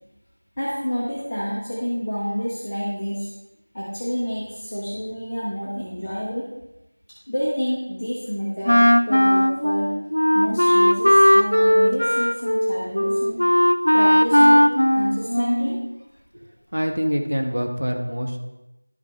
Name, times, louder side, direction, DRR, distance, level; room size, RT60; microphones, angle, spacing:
voice 1, 0.6-3.3 3.7-6.5 7.3-8.8 9.0-9.9 10.3-13.4 13.9-14.6 14.9-15.8, equal, 5° left, -12 dB, 0.6 m, -28 dB
Wind instrument woodwind instrument, 8.7-15.9, equal, 55° left, 0.4 m, -17 dB
voice 2, 16.3-18.4, equal, 40° right, 3 dB, 0.8 m, -26 dB
11.0 x 5.1 x 3.3 m, 0.97 s
figure-of-eight pair, 180°, 0 cm